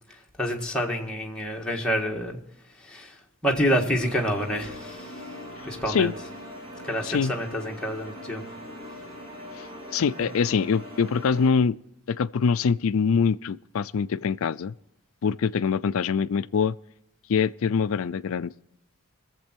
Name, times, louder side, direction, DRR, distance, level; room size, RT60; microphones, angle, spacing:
voice 1, 0.1-2.4 2.7-5.3 5.6-6.1 6.8-8.4 10.2-10.3, equal, 5° left, 1.7 m, -28 dB
sound 1, 3.9-11.5, left 1 dB, 25° right, 3.0 m, -41 dB
voice 2, 9.9-11.8 12.1-14.7 15.2-16.7 17.3-18.5, left 6 dB, 65° left, 0.4 m, -24 dB
22.0 x 7.5 x 4.5 m
head